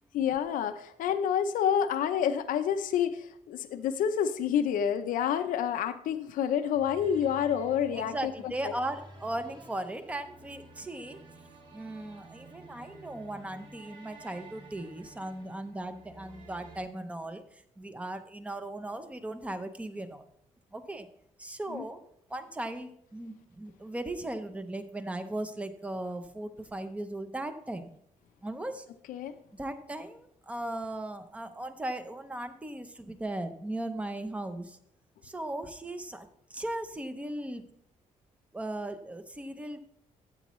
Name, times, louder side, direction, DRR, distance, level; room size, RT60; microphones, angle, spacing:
voice 1, 0.1-8.7 21.7-21.8 29.1-29.3, left 8 dB, 85° left, 9 dB, 0.6 m, -28 dB
sound 1, 6.7-16.8, right 2 dB, 40° right, 2.5 m, -52 dB
voice 2, 7.9-11.2 11.7-17.4 17.8-20.2 20.7-21.1 21.4-22.0 22.3-27.9 28.4-28.9 29.5-34.8 35.2-37.6 38.5-39.8, right 1 dB, 10° right, 9 dB, 0.7 m, -37 dB
13.0 x 8.3 x 3.1 m, 0.73 s
cardioid pair, 180°, 14 cm